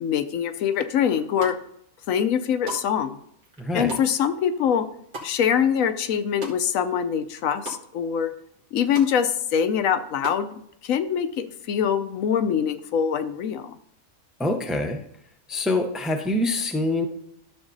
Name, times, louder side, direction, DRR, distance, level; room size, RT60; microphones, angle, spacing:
voice 1, 0.0-1.6 2.1-3.2 3.7-4.9 5.2-8.3 8.7-13.7, left 8 dB, 75° left, 10 dB, 1.0 m, -24 dB
sound 1, 1.2-1.8 2.2-7.0 7.2-7.8 8.2-8.3 8.5-9.1 9.5-10.5, right 2 dB, 80° right, 1.8 m, -39 dB
voice 2, 3.6-3.9 14.4-15.0 15.5-17.1, left 2 dB, ahead, 3 dB, 0.6 m, -25 dB
12.5 x 6.9 x 2.7 m, 0.70 s
omnidirectional pair, 1.4 m